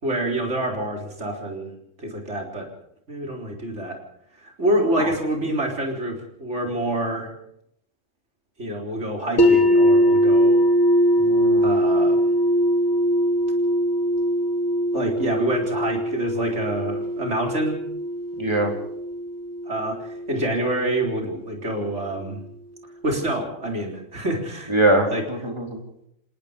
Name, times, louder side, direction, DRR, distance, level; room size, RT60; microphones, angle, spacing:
voice 1, 0.0-1.7 2.0-2.7 3.1-4.0 4.4-7.3 8.6-10.6 11.6-12.2 14.9-17.8 19.7-22.4 23.0-24.7 25.1-25.2, right 1 dB, 55° right, 1 dB, 4.4 m, -27 dB
sound 1, 9.4-21.3, equal, 55° left, 2.4 m, -21 dB
voice 2, 11.2-11.7 18.4-18.7 24.7-25.8, right 1 dB, 20° right, 2 dB, 3.7 m, -23 dB
27.5 x 18.0 x 5.2 m, 0.73 s
omnidirectional pair, 1.4 m